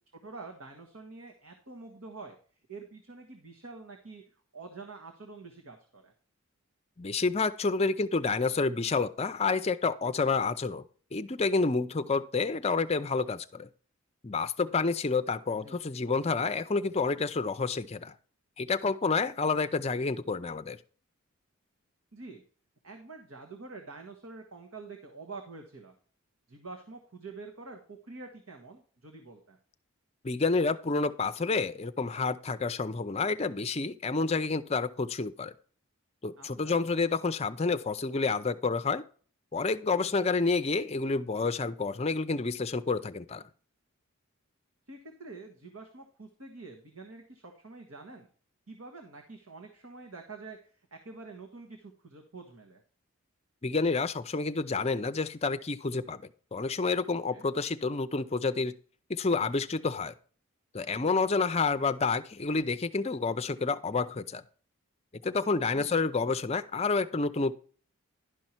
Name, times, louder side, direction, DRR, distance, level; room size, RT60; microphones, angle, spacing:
voice 1, 0.2-2.4 2.7-4.2 4.5-6.1 15.6-15.8 22.1-22.4 22.8-25.9 26.5-29.6 36.4-36.8 44.9-48.3 48.7-52.8 57.3-57.4 65.7-66.0, right 3 dB, 70° right, 3 dB, 1.4 m, -47 dB
voice 2, 7.0-10.8 11.1-13.7 14.2-18.1 18.6-20.8 30.2-35.5 36.2-39.0 39.5-43.4 53.6-56.2 56.5-58.7 59.1-60.1 60.7-64.4 65.2-67.6, left 4 dB, 30° left, 11 dB, 0.5 m, -29 dB
11.5 x 5.5 x 4.4 m, 0.43 s
head